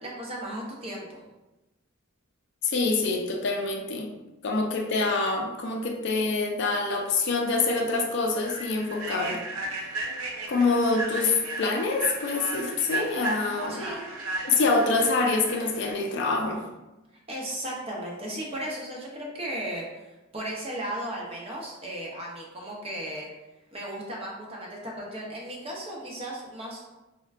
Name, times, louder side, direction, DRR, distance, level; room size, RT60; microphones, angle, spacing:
voice 1, 0.0-1.2 13.7-14.1 17.3-23.3 23.7-26.9, right 1 dB, 25° right, -3 dB, 0.6 m, -36 dB
voice 2, 2.6-4.1 4.4-9.4 10.5-13.8 14.4-16.6, left 3 dB, 55° left, 2 dB, 0.4 m, -26 dB
Human voice / Train, 7.1-7.2 7.6-7.8 8.3-15.9, right 2 dB, 85° right, 0.5 m, -35 dB
4.4 x 2.1 x 2.4 m, 1.1 s
head